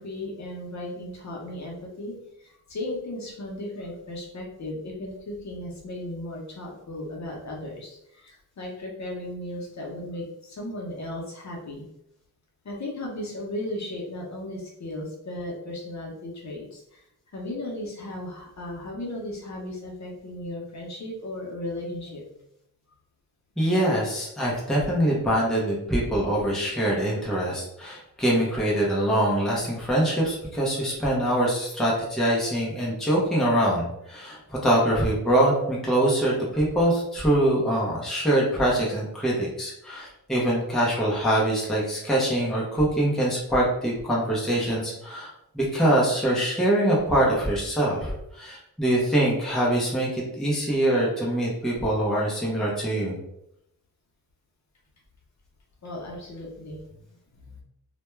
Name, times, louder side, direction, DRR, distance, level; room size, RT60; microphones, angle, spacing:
voice 1, 0.0-11.8 12.6-17.0 17.3-22.2 55.8-56.8 57.3-57.6, left 1 dB, 50° left, -2 dB, 0.7 m, -36 dB
voice 2, 23.6-53.2, right 1 dB, ahead, -4 dB, 0.5 m, -24 dB
2.2 x 2.2 x 3.0 m, 0.79 s
wide cardioid pair, 160°, 35 cm